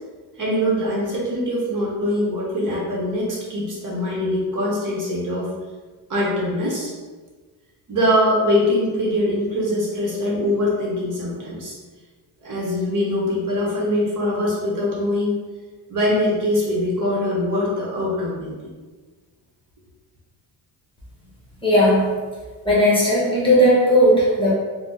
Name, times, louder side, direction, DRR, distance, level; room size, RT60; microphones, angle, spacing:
voice 1, 0.4-5.5 6.1-6.9 7.9-11.7 12.4-15.3 15.9-18.5, left 1 dB, 50° right, -5 dB, 0.9 m, -22 dB
voice 2, 21.6-22.1 22.6-24.5, equal, 10° left, -7 dB, 0.9 m, -16 dB
3.3 x 2.1 x 2.8 m, 1.4 s
cardioid pair, 110°, 42 cm